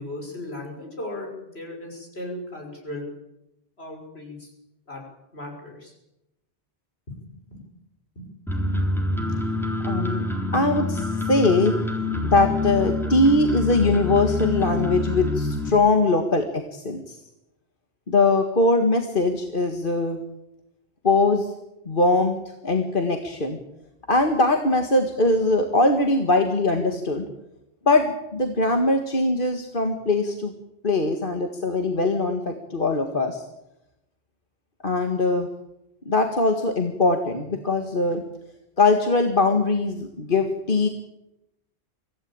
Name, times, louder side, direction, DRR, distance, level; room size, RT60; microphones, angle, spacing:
voice 1, 0.0-3.1 3.8-4.5 4.9-5.0 5.3-5.9 7.1-7.2 7.5-7.6 8.2-8.6, left 1 dB, 70° left, 0 dB, 6.4 m, -37 dB
sound 1, 8.5-15.7, left 2 dB, ahead, 3.6 m, -26 dB
voice 2, 9.8-10.2 10.5-11.7 12.2-17.2 18.1-20.2 21.0-21.5 21.9-23.6 24.1-27.3 27.9-30.5 30.8-33.4 34.8-35.5 36.1-38.2 38.8-40.9, left 2 dB, 50° left, 4 dB, 2.0 m, -21 dB
25.0 x 16.5 x 8.8 m, 0.89 s
omnidirectional pair, 1.1 m